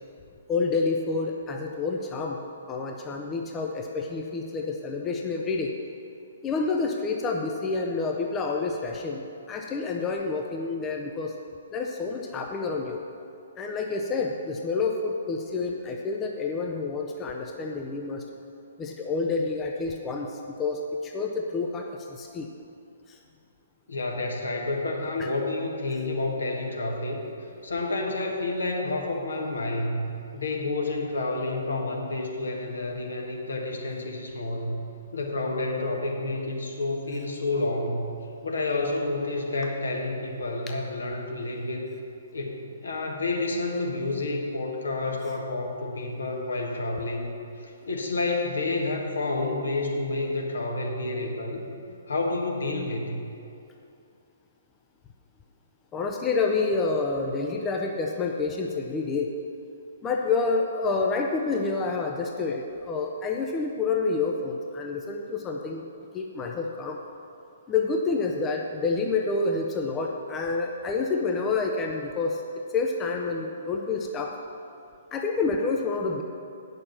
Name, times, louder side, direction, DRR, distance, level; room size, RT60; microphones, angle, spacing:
voice 1, 0.5-2.4 2.7-5.7 6.4-11.3 11.7-13.0 13.6-18.2 18.8-22.5 23.1-23.2 25.2-25.3 55.9-59.3 60.0-65.9 66.1-67.0 67.7-72.4 72.7-74.3 75.1-76.2, left 4 dB, 20° left, 1 dB, 0.7 m, -28 dB
voice 2, 23.9-27.2 27.6-30.1 30.3-34.8 35.1-38.1 38.4-41.8 42.3-47.3 47.6-51.6 52.1-53.2, left 2 dB, 70° left, 0 dB, 1.6 m, -29 dB
8.7 x 6.6 x 7.1 m, 2.6 s
figure-of-eight pair, 125°, 0 cm